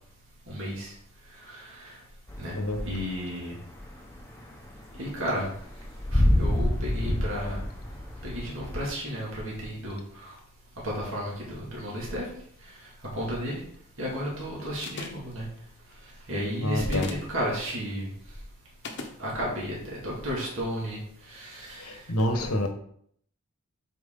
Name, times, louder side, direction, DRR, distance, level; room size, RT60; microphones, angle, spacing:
voice 1, 0.5-1.0 1.3-2.0 2.4-2.6 2.8-3.6 4.9-5.5 6.1-7.6 8.2-10.4 10.8-13.6 14.0-15.5 16.0-18.1 19.2-22.1, equal, 60° right, -5 dB, 2.2 m, -33 dB
sound 1, 2.3-3.3 3.6-8.8, left 1 dB, 10° left, 0.9 m, -27 dB
sound 2, 14.8-15.3 16.8-17.3 18.8-19.2, left 3 dB, 50° left, 0.9 m, -37 dB
voice 2, 16.6-17.1 21.8-22.7, left 1 dB, 80° left, 6 dB, 1.2 m, -27 dB
8.0 x 4.8 x 3.8 m, 0.65 s
head